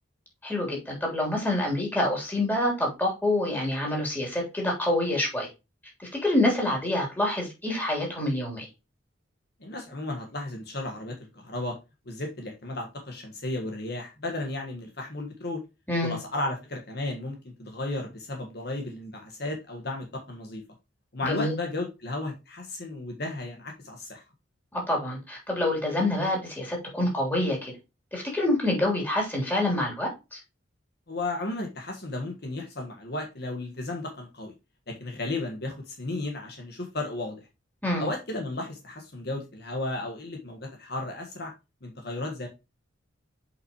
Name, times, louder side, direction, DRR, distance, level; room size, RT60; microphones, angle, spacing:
voice 1, 0.4-5.5 6.0-8.6 15.9-16.2 21.2-21.6 24.7-27.7 28.1-30.4 37.8-38.1, left 1 dB, 10° left, -2 dB, 3.4 m, -27 dB
voice 2, 9.6-11.8 12.0-15.6 16.0-20.6 21.1-24.2 31.1-34.5 34.9-37.5 38.0-41.5 41.8-42.5, left 2 dB, 55° left, 2 dB, 1.5 m, -34 dB
7.6 x 5.6 x 3.0 m, 0.26 s
head